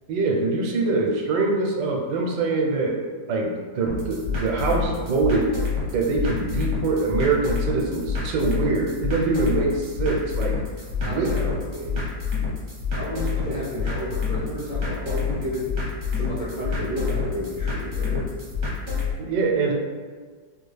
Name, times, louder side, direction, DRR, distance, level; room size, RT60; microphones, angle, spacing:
voice 1, 0.1-3.0 3.3-5.5 5.9-10.6 11.0-11.3 19.2-19.7, right 3 dB, 85° right, 1 dB, 1.3 m, -24 dB
sound 1, 3.9-19.1, left 5 dB, 50° right, 0.6 m, -28 dB
voice 2, 11.0-12.0 13.0-15.7 16.1-18.3, equal, 80° left, -10 dB, 0.4 m, -31 dB
3.3 x 2.3 x 3.2 m, 1.5 s
omnidirectional pair, 2.0 m